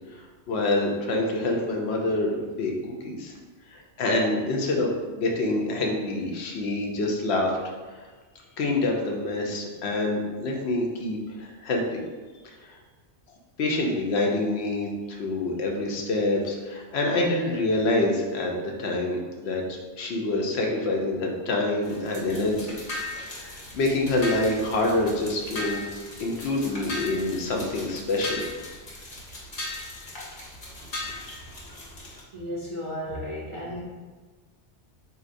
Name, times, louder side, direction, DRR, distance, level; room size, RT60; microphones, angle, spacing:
voice 1, 0.5-3.3 3.7-7.5 8.6-12.0 12.4-12.8 13.6-18.5 18.8-19.6 20.0-22.8 23.2-25.8 26.2-28.4, left 2 dB, 75° left, 0 dB, 0.8 m, -26 dB
sound 1, 21.8-32.2, left 2 dB, 45° left, 0.9 m, -38 dB
voice 2, 32.3-33.9, equal, 40° right, -7 dB, 0.5 m, -34 dB
4.0 x 2.7 x 2.5 m, 1.4 s
omnidirectional pair, 1.2 m